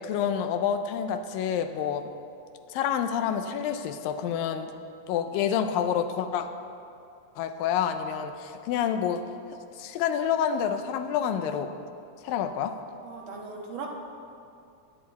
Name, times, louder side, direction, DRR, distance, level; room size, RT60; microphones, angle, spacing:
voice 1, 0.0-2.0 2.7-4.7 5.1-6.5 7.4-9.2 9.8-11.7 12.2-12.7, left 8 dB, 85° left, 7 dB, 2.4 m, -28 dB
voice 2, 13.0-13.9, right 5 dB, 50° right, -1 dB, 1.7 m, -38 dB
23.0 x 8.8 x 4.1 m, 2.5 s
omnidirectional pair, 3.9 m